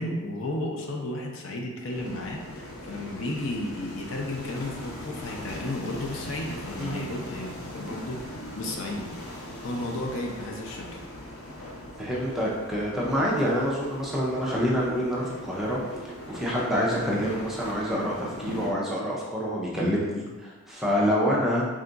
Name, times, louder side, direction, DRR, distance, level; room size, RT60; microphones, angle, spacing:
voice 1, 0.0-9.1 9.6-11.0, left 1 dB, 60° left, 1 dB, 0.5 m, -33 dB
sound 1, 1.9-18.7, left 1 dB, 85° left, 0.8 m, -40 dB
voice 2, 12.0-21.7, equal, ahead, -6 dB, 0.5 m, -27 dB
3.6 x 2.3 x 3.8 m, 1.3 s
head